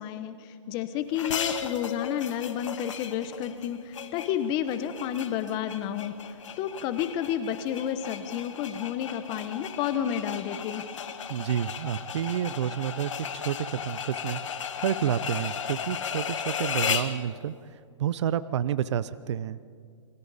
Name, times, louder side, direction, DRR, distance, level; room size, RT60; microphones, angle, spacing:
voice 1, 0.0-10.8, left 9 dB, 25° left, 11 dB, 0.9 m, -31 dB
sound 1, 1.1-17.2, left 7 dB, 65° left, 1.7 m, -35 dB
voice 2, 11.3-14.4 14.8-19.6, right 10 dB, 60° right, 16 dB, 0.7 m, -30 dB
28.5 x 22.0 x 4.1 m, 2.2 s
hypercardioid pair, 150°, 17 cm